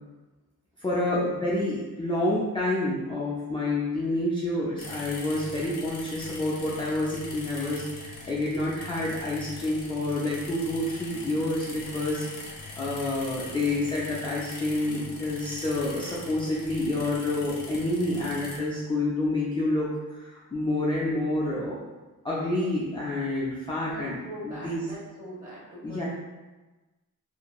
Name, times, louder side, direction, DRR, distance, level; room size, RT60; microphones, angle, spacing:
voice 1, 0.8-21.9 22.2-24.9 25.8-26.0, left 2 dB, 15° left, -7 dB, 0.3 m, -28 dB
sound 1, 4.8-18.6, left 3 dB, 60° left, 0.6 m, -42 dB
voice 2, 23.8-26.1, equal, 20° right, -8 dB, 1.0 m, -41 dB
2.8 x 2.5 x 2.3 m, 1.2 s
wide cardioid pair, 135°, 36 cm